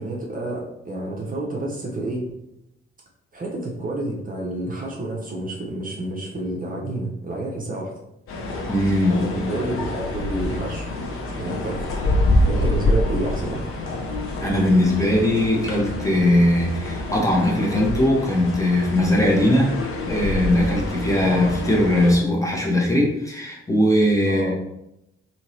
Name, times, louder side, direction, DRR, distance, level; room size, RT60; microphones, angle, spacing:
voice 1, 0.0-2.3 3.3-7.9 9.1-10.9 11.3-11.9 12.5-13.6 24.3-24.5, right 2 dB, 30° right, -2 dB, 0.7 m, -29 dB
sound 1, 8.3-22.1, left 1 dB, 45° left, 0.7 m, -26 dB
voice 2, 8.7-9.2 14.4-19.8 20.0-24.5, left 1 dB, 10° left, -2 dB, 0.8 m, -20 dB
2.8 x 2.8 x 2.8 m, 0.85 s
figure-of-eight pair, 40°, 30 cm